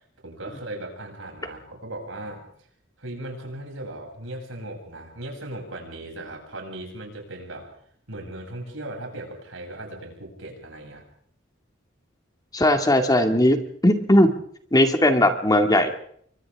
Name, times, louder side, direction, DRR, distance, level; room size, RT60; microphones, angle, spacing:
voice 1, 0.2-2.5 3.0-7.7 8.1-11.0, right 1 dB, 80° right, 1 dB, 7.8 m, -37 dB
voice 2, 12.5-13.6 13.8-14.3 14.7-16.0, left 1 dB, 20° left, 6 dB, 2.2 m, -18 dB
29.0 x 24.5 x 3.7 m, 0.63 s
head